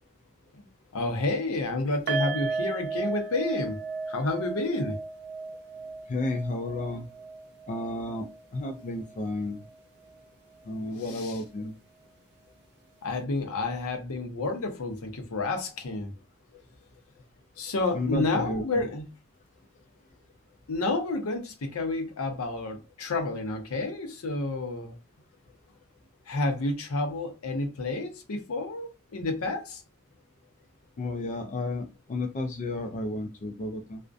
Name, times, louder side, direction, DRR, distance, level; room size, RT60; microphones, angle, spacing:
voice 1, 0.9-3.8 4.1-5.0 11.1-11.3 13.0-16.1 17.6-19.1 20.7-24.9 26.3-29.8, left 2 dB, 70° left, 0.6 m, -30 dB
sound 1, 2.1-9.3 9.5-9.7 10.1-10.2, right 4 dB, 50° right, 0.6 m, -35 dB
voice 2, 6.1-7.1 7.7-9.6 10.7-11.7 17.9-18.8 31.0-34.0, left 2 dB, 35° left, 0.3 m, -32 dB
2.3 x 2.1 x 2.5 m
head